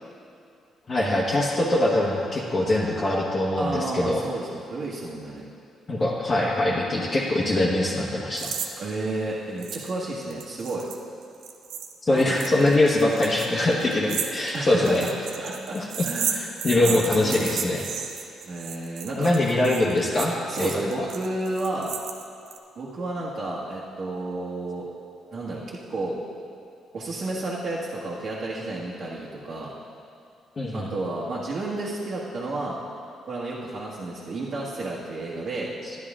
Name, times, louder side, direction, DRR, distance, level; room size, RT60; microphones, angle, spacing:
voice 1, 0.9-4.2 5.9-8.5 12.0-15.0 15.7-15.9 16.3-17.9 19.2-20.7 21.0-21.1 30.6-30.9 35.8-35.9, left 1 dB, 35° left, -5 dB, 1.3 m, -23 dB
voice 2, 3.6-5.4 8.8-10.9 12.1-12.4 14.5-15.1 15.4-16.5 16.7-17.6 18.5-19.3 20.5-21.9 22.8-24.9 25.3-26.2 26.9-29.7 30.7-32.8 33.3-35.7, right 2 dB, 55° right, -7 dB, 1.7 m, -31 dB
sound 1, 8.4-8.7 8.9-9.0 9.6-9.9 10.2-22.6, right 7 dB, 80° right, 0.7 m, -33 dB
12.0 x 10.5 x 3.7 m, 2.6 s
cardioid pair, 90°, 0 cm